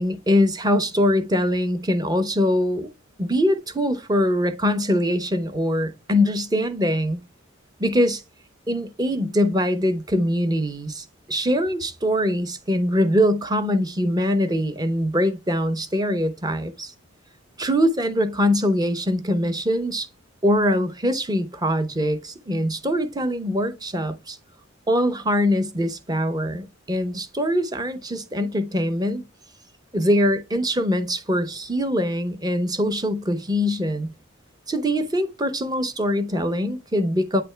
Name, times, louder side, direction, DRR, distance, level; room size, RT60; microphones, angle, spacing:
voice 1, 0.0-2.9 3.2-7.2 7.8-8.2 8.7-16.9 17.6-20.1 20.4-24.4 24.9-29.2 29.9-34.1 34.7-37.4, equal, 20° right, 0.7 m, -23 dB
9.0 x 3.4 x 3.3 m
head